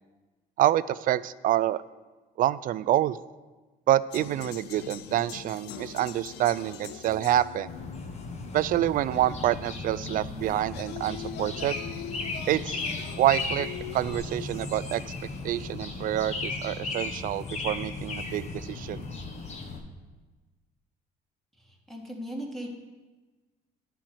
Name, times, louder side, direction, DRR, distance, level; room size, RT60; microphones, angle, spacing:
voice 1, 0.6-1.8 2.4-3.2 3.9-7.7 8.5-11.7 12.5-12.8 13.2-13.7 13.9-15.0 15.4-19.0, right 13 dB, 55° right, 17 dB, 0.4 m, -27 dB
sound 1, 4.1-9.8 10.5-14.5, left 10 dB, 85° left, 0.6 m, -43 dB
sound 2, 7.7-19.8, left 3 dB, 40° left, 1.3 m, -36 dB
voice 2, 21.5-22.7, equal, ahead, -1 dB, 1.9 m, -38 dB
10.5 x 4.6 x 7.8 m, 1.2 s
cardioid pair, 110°, 17 cm